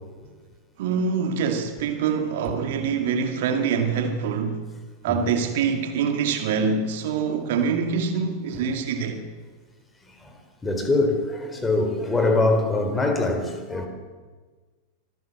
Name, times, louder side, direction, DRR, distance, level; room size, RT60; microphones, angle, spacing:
voice 1, 0.8-4.6 5.0-9.2, right 6 dB, 55° right, 2.2 m, -25 dB
voice 2, 10.6-13.9, left 2 dB, 15° left, 4.2 m, -23 dB
25.0 x 15.5 x 7.6 m
figure-of-eight pair, 90°, 0 cm